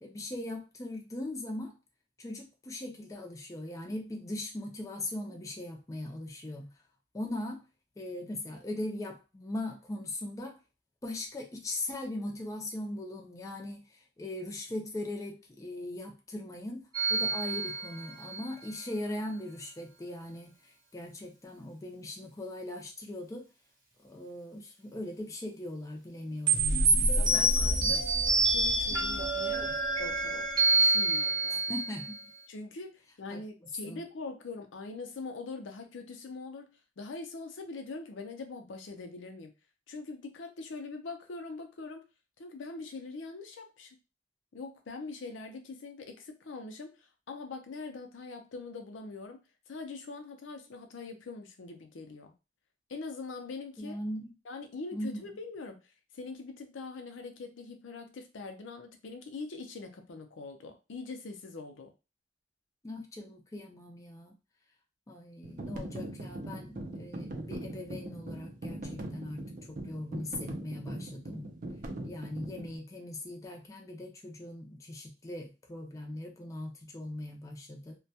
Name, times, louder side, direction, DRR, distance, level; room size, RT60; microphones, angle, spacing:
voice 1, 0.0-1.7 2.2-6.7 7.1-7.6 8.0-10.6 11.0-13.8 14.2-23.5 24.0-27.5 27.8-28.0 29.6-29.8 31.5-32.2 33.3-33.4 33.9-34.0 53.8-54.3 54.9-55.2 62.8-64.3 65.1-71.5 72.0-78.0, left 1 dB, 15° left, 1 dB, 0.4 m, -40 dB
sound 1, 16.9-18.5 26.5-32.2, right 2 dB, 25° right, 0.9 m, -27 dB
voice 2, 27.2-28.1 28.4-29.7 30.0-30.5 30.7-31.6 32.5-39.5 39.9-42.0 42.4-44.0 44.5-52.3 52.9-54.0 54.4-55.8 56.1-61.9, left 3 dB, 75° left, 5 dB, 0.5 m, -43 dB
sound 2, 65.4-72.8, right 1 dB, 45° right, 0.5 m, -41 dB
2.2 x 2.1 x 2.7 m, 0.29 s
head